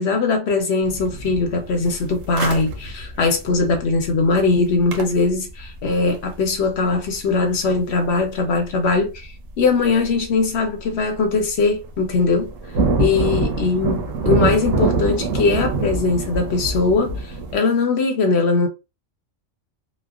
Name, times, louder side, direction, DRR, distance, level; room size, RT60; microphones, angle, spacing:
voice 1, 0.0-9.3 9.6-12.5 13.0-18.7, left 4 dB, 65° left, 0.8 m, -20 dB
sound 1, 0.8-8.9 9.1-9.2 9.9-10.2 10.6-11.0 11.3-11.4 11.7-17.6, right 3 dB, 85° right, 1.0 m, -25 dB
3.0 x 2.1 x 2.3 m
omnidirectional pair, 1.3 m